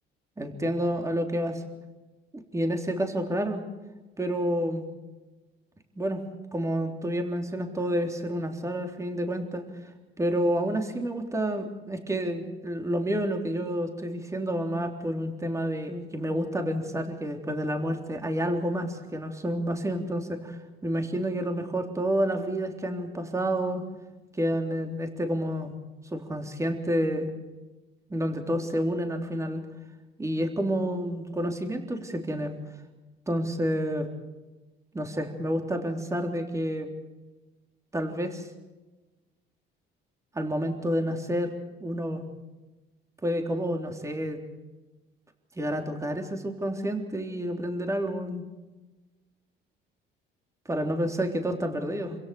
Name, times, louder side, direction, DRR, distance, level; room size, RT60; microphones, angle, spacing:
voice 1, 0.4-1.6 2.3-3.6 4.2-4.9 6.0-6.2 6.5-9.6 10.2-23.8 24.3-25.7 26.1-27.3 28.1-29.6 30.2-32.5 33.3-34.1 34.9-36.9 37.9-38.5 40.3-41.5 41.8-42.2 43.2-44.4 45.6-48.4 50.7-52.2, equal, 15° right, 4 dB, 3.6 m, -29 dB
27.0 x 16.5 x 7.0 m, 1.1 s
cardioid pair, 110°, 20 cm